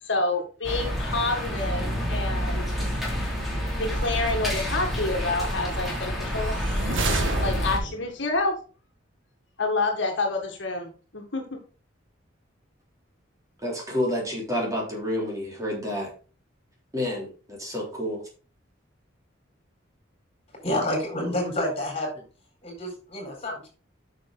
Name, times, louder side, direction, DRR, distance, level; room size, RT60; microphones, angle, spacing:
voice 1, 0.0-2.7 3.8-6.6 7.4-8.5 9.6-11.4, left 3 dB, 65° left, 2 dB, 1.7 m, -28 dB
sound 1, 0.6-7.8, equal, ahead, 2.9 m, -28 dB
sound 2, 6.3-8.1, right 2 dB, 75° right, 1.9 m, -28 dB
voice 2, 13.6-16.1 16.9-18.2, left 1 dB, 15° right, -2 dB, 3.3 m, -29 dB
voice 3, 20.6-22.2 22.6-23.7, left 1 dB, 30° left, 1 dB, 4.2 m, -29 dB
8.8 x 6.5 x 3.9 m, 0.36 s
head